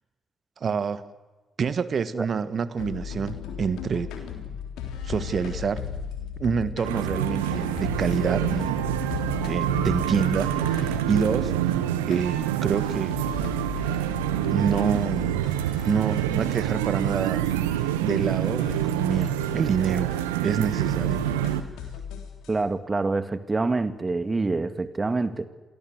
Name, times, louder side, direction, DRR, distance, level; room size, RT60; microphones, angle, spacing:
voice 1, 0.6-1.0 1.6-4.1 5.0-5.9 6.4-8.9 9.4-11.8 12.1-13.2 14.5-15.5 15.8-17.4 18.0-20.1 20.4-21.3, right 6 dB, 50° right, 1.6 m, -27 dB
sound 1, 2.8-11.7 12.1-12.2 12.8-17.2 17.4-17.5 17.8-17.9 18.1-20.5 20.8-22.5, left 7 dB, 75° left, 3.4 m, -36 dB
sound 2, 6.8-21.6, right 12 dB, 85° right, 1.1 m, -27 dB
voice 2, 22.5-25.5, right 3 dB, 30° right, 2.1 m, -26 dB
28.5 x 18.5 x 8.0 m
hypercardioid pair, 40°, 0 cm